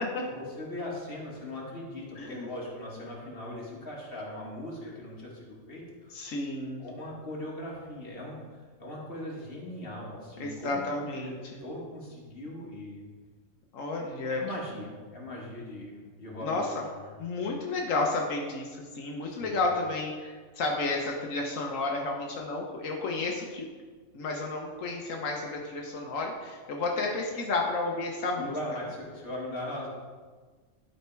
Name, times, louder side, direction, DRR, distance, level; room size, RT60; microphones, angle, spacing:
voice 1, 0.2-6.1 6.8-8.4 8.8-11.3 11.6-13.1 14.4-17.2 19.2-19.6 28.4-29.9, left 1 dB, 45° left, -4 dB, 2.0 m, -39 dB
voice 2, 2.2-2.5 6.1-6.8 10.4-11.6 13.7-14.4 16.4-16.8 17.2-23.7 24.1-28.5, left 3 dB, 85° left, 0 dB, 1.3 m, -32 dB
11.5 x 4.3 x 4.6 m, 1.4 s
omnidirectional pair, 1.3 m